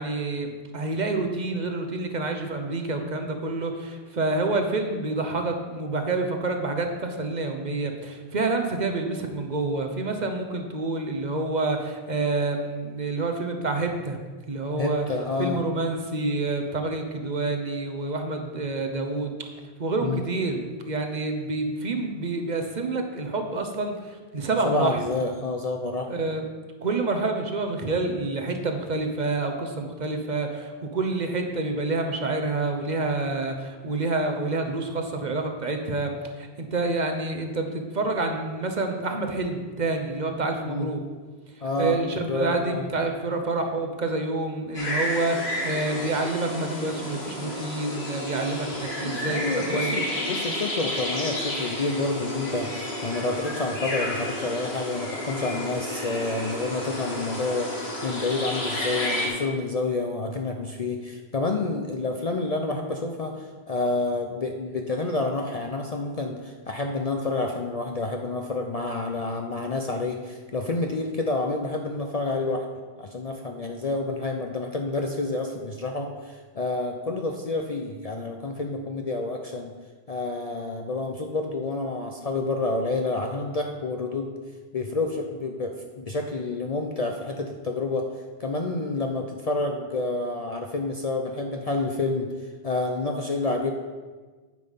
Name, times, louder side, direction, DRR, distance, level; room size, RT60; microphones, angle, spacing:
voice 1, 0.0-14.2 14.5-15.1 15.4-19.5 19.8-25.0 26.1-26.5 26.8-41.0 41.8-50.0, right 3 dB, 45° right, 5 dB, 1.0 m, -28 dB
voice 2, 14.8-15.6 20.0-20.2 24.6-26.1 40.6-40.9 41.6-42.0 42.3-42.9 49.0-57.7 58.0-72.6 73.0-79.8 80.1-84.3 84.7-88.0 88.4-92.3 92.6-93.7, left 3 dB, 45° left, 2 dB, 0.6 m, -29 dB
sound 1, 44.7-59.3, left 1 dB, 85° left, 1.9 m, -31 dB
9.3 x 5.5 x 5.5 m, 1.4 s
omnidirectional pair, 1.1 m